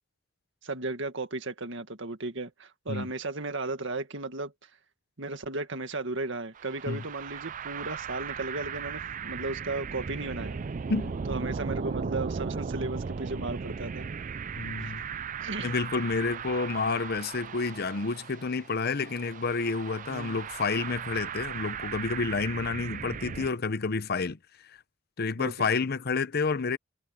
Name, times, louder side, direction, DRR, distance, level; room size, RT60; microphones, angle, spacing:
voice 1, 0.6-4.7 5.2-10.6 11.3-14.1 14.8-14.9 15.4-15.7 20.1-20.4 25.4-25.7, right 2 dB, 70° right, 2.0 m, -35 dB
sound 1, 6.6-23.5, right 6 dB, 40° right, 0.4 m, -37 dB
voice 2, 14.6-15.0 15.6-24.4 24.7-24.8 25.2-26.8, left 4 dB, 55° left, 0.8 m, -29 dB
head